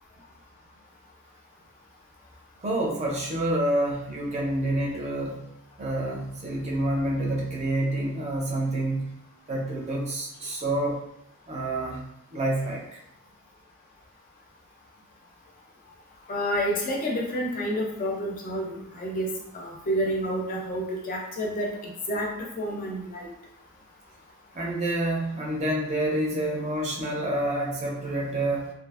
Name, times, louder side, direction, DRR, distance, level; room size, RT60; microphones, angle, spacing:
voice 1, 2.6-5.4 5.8-9.1 9.5-11.0 11.5-12.0 12.3-13.0 24.5-28.7, right 1 dB, 30° right, -2 dB, 0.6 m, -28 dB
voice 2, 16.3-19.3 19.5-22.3 22.6-23.3, equal, 40° left, -1 dB, 0.5 m, -29 dB
2.6 x 2.4 x 2.4 m, 0.80 s
head